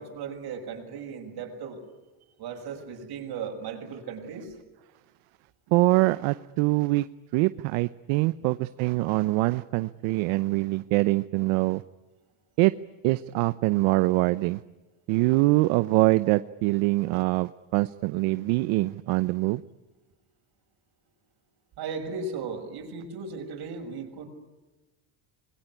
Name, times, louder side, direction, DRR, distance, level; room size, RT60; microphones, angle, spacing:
voice 1, 0.0-1.8 2.4-4.5 21.8-24.2, right 5 dB, 50° right, 4 dB, 6.7 m, -36 dB
voice 2, 5.7-7.1 7.3-11.8 12.6-12.7 13.0-14.6 15.1-19.6, right 21 dB, 75° right, 14 dB, 0.9 m, -24 dB
26.5 x 22.5 x 9.8 m, 1.2 s
cardioid pair, 135°, 47 cm